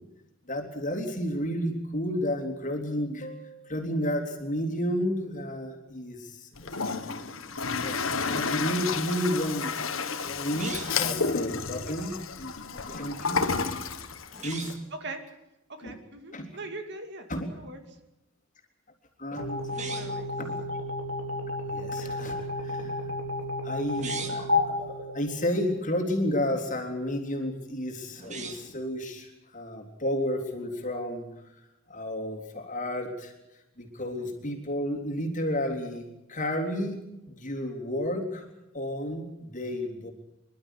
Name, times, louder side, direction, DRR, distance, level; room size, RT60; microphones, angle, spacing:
voice 1, 0.5-7.5 7.8-9.8 10.2-13.7 14.4-14.7 15.8-15.9 16.3-16.5 17.3-17.5 19.2-19.7 20.4-20.6 21.7-23.1 23.6-24.8 25.1-31.3 31.9-33.3 33.8-37.0 37.3-38.4 38.7-40.1, equal, 35° left, 2 dB, 3.5 m, -32 dB
Toilet flush, 6.5-14.7, left 5 dB, 70° left, 1.4 m, -31 dB
sound 1, 10.5-11.2 14.3-14.9 19.6-20.3 23.9-24.5 28.1-28.8, right 5 dB, 35° right, 2.1 m, -39 dB
voice 2, 15.8-17.3 17.6-17.8 19.7-20.3, right 2 dB, 55° right, 6 dB, 2.4 m, -41 dB
sound 2, 19.4-25.9, left 2 dB, 75° right, 4.1 m, -32 dB
26.0 x 12.5 x 10.0 m, 0.94 s
head